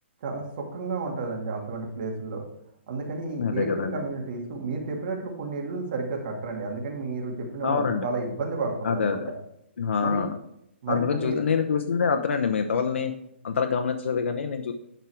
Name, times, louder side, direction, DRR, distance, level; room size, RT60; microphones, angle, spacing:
voice 1, 0.2-2.4 2.9-9.3 10.0-10.2 10.8-11.4, right 3 dB, 45° right, 1 dB, 2.3 m, -31 dB
voice 2, 3.4-4.0 7.6-8.1 8.8-9.3 9.8-10.4 10.9-13.1 13.4-14.7, left 6 dB, 80° left, 5 dB, 0.8 m, -26 dB
11.0 x 4.6 x 4.8 m, 0.78 s
hypercardioid pair, 165°, 7 cm